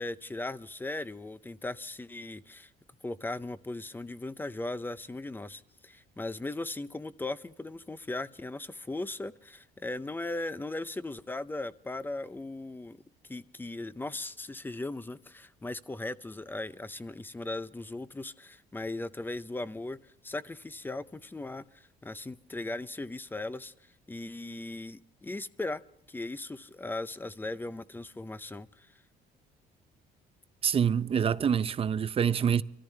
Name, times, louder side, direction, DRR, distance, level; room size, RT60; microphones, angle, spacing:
voice 1, 0.0-2.7 3.0-13.0 13.3-23.7 24.1-25.8 26.1-28.9, left 2 dB, 10° left, 0.5 m, -38 dB
voice 2, 30.6-32.6, right 7 dB, 35° right, 0.6 m, -26 dB
25.0 x 14.0 x 3.2 m
cardioid pair, 110°, 17 cm